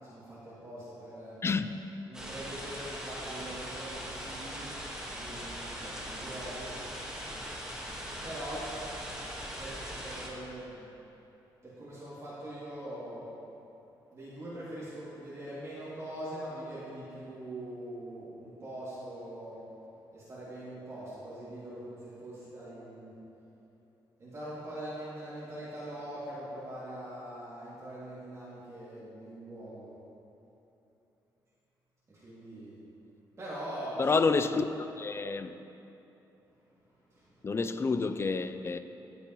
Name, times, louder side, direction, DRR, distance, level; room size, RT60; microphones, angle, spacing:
voice 1, 0.0-1.4 2.0-4.7 5.1-6.7 8.2-8.7 9.6-10.8 11.6-13.3 14.1-19.6 20.1-23.2 24.2-29.9 32.1-32.8 33.4-34.2 37.1-37.4, right 1 dB, 35° right, 2.5 m, -42 dB
voice 2, 1.4-1.8 34.0-35.6 37.4-38.8, left 4 dB, 30° left, 0.4 m, -29 dB
sound 1, 2.1-10.3, equal, 10° right, 1.5 m, -40 dB
17.5 x 6.8 x 3.1 m
cardioid pair, 115°, 9 cm